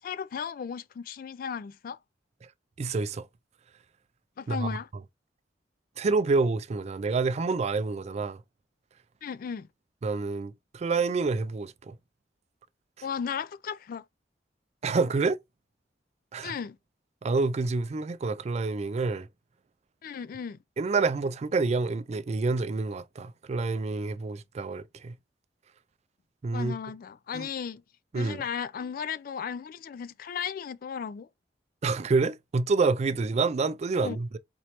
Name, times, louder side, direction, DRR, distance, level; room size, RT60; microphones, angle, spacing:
voice 1, 0.0-2.0 4.4-4.9 9.2-9.7 13.0-14.0 16.4-16.8 20.0-20.6 26.5-27.8 28.1-31.3 34.0-34.2, left 7 dB, 50° left, 0.3 m, -35 dB
voice 2, 2.8-3.3 4.5-4.8 6.0-8.4 10.0-12.0 14.8-15.4 16.3-16.5 17.2-19.3 20.8-25.1 26.4-26.8 27.3-27.5 28.1-28.4 31.8-34.4, right 4 dB, 40° right, 0.3 m, -28 dB
4.3 x 3.0 x 2.9 m
head